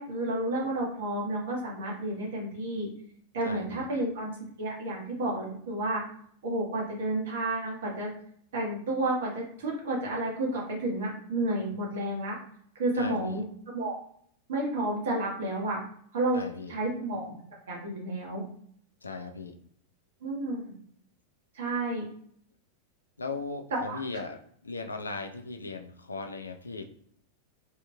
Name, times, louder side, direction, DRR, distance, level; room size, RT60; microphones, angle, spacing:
voice 1, 0.0-2.9 3.3-4.3 4.6-6.0 6.4-8.1 8.5-12.4 12.8-13.9 14.5-15.8 16.1-16.4 16.7-17.3 17.7-18.4 20.2-20.7 21.5-22.0 23.7-23.8, right 2 dB, 60° right, -2 dB, 1.2 m, -31 dB
voice 2, 3.4-3.8 13.0-13.4 16.3-16.7 19.0-19.6 23.2-26.8, left 3 dB, 75° left, 5 dB, 0.4 m, -38 dB
3.5 x 2.9 x 2.2 m, 0.62 s
figure-of-eight pair, 90°, 0 cm